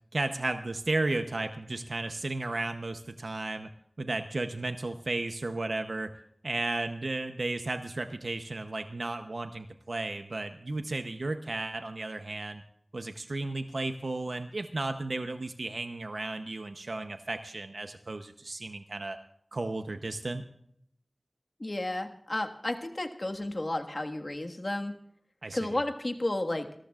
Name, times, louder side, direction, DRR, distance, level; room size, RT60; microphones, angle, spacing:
voice 1, 0.1-3.7 4.0-6.1 6.4-12.6 12.9-19.2 19.5-20.5 25.4-25.7, right 2 dB, 90° right, 7 dB, 0.7 m, -34 dB
voice 2, 21.6-24.9 25.5-26.7, left 1 dB, 55° left, 4 dB, 1.6 m, -32 dB
28.5 x 14.0 x 2.4 m, 0.69 s
wide cardioid pair, 45°, 0 cm